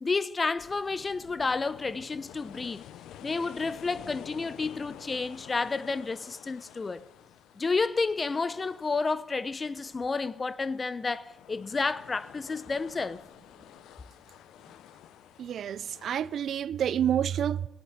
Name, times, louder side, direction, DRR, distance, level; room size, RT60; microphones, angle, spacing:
voice 1, 0.0-2.8 3.2-7.0 7.6-13.2, left 4 dB, 30° left, 0.6 m, -30 dB
sound 1, 0.6-16.5, left 11 dB, 85° left, 0.5 m, -50 dB
voice 2, 15.4-17.7, right 9 dB, 65° right, 0.4 m, -28 dB
17.0 x 8.0 x 8.9 m
cardioid pair, 90°, 0 cm